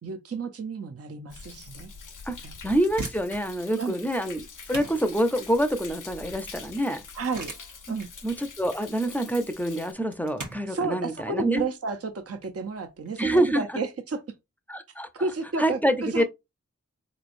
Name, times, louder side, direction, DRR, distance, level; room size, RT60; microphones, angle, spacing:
voice 1, 0.0-1.9 2.4-2.5 3.8-4.0 7.2-7.5 7.9-8.1 10.7-14.2 15.1-16.2, right 4 dB, 50° right, 0.6 m, -32 dB
Thunder, 1.3-9.9, left 5 dB, 90° left, 0.6 m, -45 dB
voice 2, 2.6-7.0 8.2-11.7 13.2-13.8 14.7-15.1 15.6-16.2, right 1 dB, 5° left, 0.6 m, -26 dB
sound 1, 2.8-13.4, right 2 dB, 80° right, 1.1 m, -43 dB
4.0 x 3.1 x 2.5 m
wide cardioid pair, 40°, 30 cm